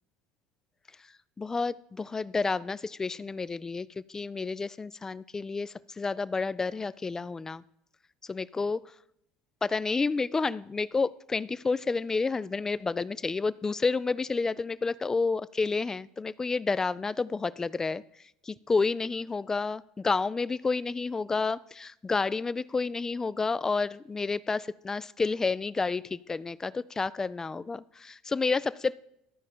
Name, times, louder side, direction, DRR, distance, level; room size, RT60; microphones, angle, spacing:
voice 1, 1.4-7.6 8.3-8.8 9.6-18.0 18.4-29.0, left 4 dB, 20° left, 19 dB, 0.3 m, -30 dB
13.0 x 4.9 x 4.3 m, 0.78 s
hypercardioid pair, 80°, 3 cm